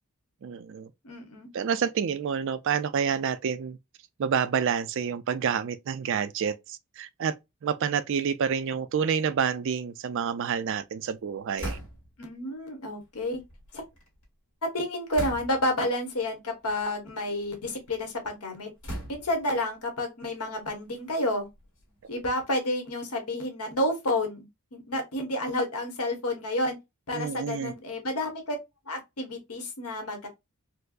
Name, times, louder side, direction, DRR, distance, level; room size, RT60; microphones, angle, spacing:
voice 1, 0.4-0.9 1.5-3.8 4.2-7.3 7.6-11.8 27.1-27.7, right 7 dB, 55° right, 0.3 m, -28 dB
voice 2, 1.0-1.5 12.2-13.4 13.7-13.8 14.7-18.7 19.1-21.5 22.1-24.5 24.7-26.8 27.1-28.6 28.9-30.3, left 1 dB, 80° left, 1.3 m, -30 dB
sound 1, 11.6-12.3 13.2-14.2 15.1-15.8 16.6-16.8 17.3-18.0 18.8-19.5 20.3-22.2, equal, 60° left, 1.9 m, -40 dB
4.3 x 2.0 x 2.5 m
head